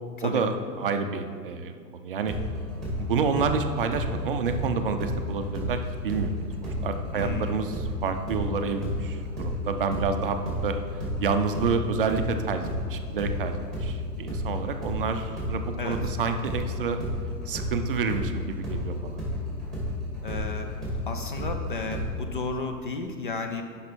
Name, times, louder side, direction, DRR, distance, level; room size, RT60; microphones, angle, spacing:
voice 1, 0.2-2.3 3.0-10.8 11.2-17.0 17.5-19.2, right 5 dB, 35° right, 7 dB, 0.5 m, -29 dB
sound 1, 2.3-5.8 6.1-14.0 14.3-22.1, left 1 dB, ahead, 2.4 m, -32 dB
voice 2, 7.1-7.6 15.8-16.0 20.2-20.7 21.1-23.6, left 3 dB, 35° left, 5 dB, 0.4 m, -33 dB
10.0 x 5.4 x 4.3 m, 2.1 s
figure-of-eight pair, 115°, 50 cm